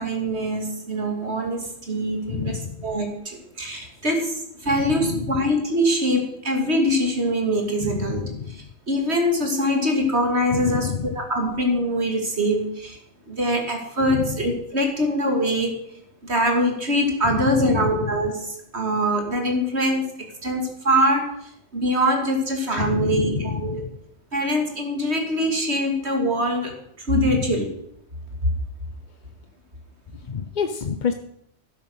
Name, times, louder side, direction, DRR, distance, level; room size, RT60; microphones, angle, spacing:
voice 1, 0.0-13.0 13.3-15.7 16.2-20.0 20.4-23.8 24.3-27.7, equal, 60° right, 2 dB, 2.8 m, -23 dB
voice 2, 2.3-2.9 4.8-5.3 7.8-8.5 10.5-11.2 14.1-14.4 17.2-18.0 22.8-23.9 27.2-27.5 30.3-31.1, left 6 dB, 45° left, 8 dB, 0.8 m, -28 dB
12.5 x 9.6 x 6.4 m, 0.73 s
omnidirectional pair, 1.3 m